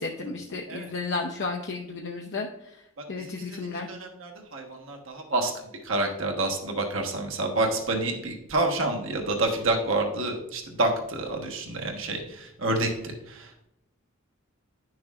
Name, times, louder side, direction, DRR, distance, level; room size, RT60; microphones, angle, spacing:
voice 1, 0.0-2.5 3.1-3.9, left 3 dB, 55° left, 1 dB, 0.6 m, -32 dB
voice 2, 3.2-12.9 13.3-13.7, right 2 dB, 65° right, 2 dB, 1.2 m, -28 dB
9.9 x 6.3 x 2.4 m, 0.83 s
head